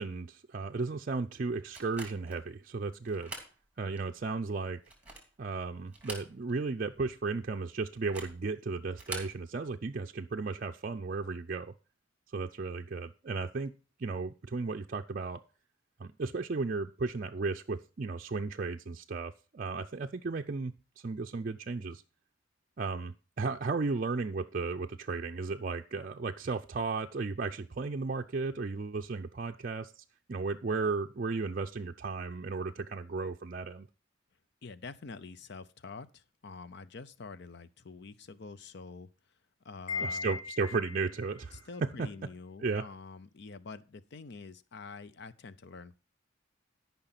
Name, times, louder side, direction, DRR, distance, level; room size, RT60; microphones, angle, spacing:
voice 1, 0.0-3.3 3.8-4.8 5.4-11.7 12.3-13.7 14.0-15.4 16.0-20.7 21.0-22.0 22.8-29.9 30.3-33.9 40.0-42.1 42.6-42.8, right 4 dB, 45° right, 0.5 m, -34 dB
sound 1, 1.7-2.4 3.0-3.5 4.0-4.1 4.7-5.4 5.9-6.7 6.9-7.0 8.0-8.4 8.9-9.4, right 2 dB, 10° right, 2.9 m, -44 dB
voice 2, 34.6-39.1 39.6-40.4 41.5-46.1, left 4 dB, 60° left, 0.6 m, -47 dB
Wind chime, 39.9-41.3, left 4 dB, 40° left, 1.3 m, -37 dB
13.0 x 5.7 x 5.8 m
head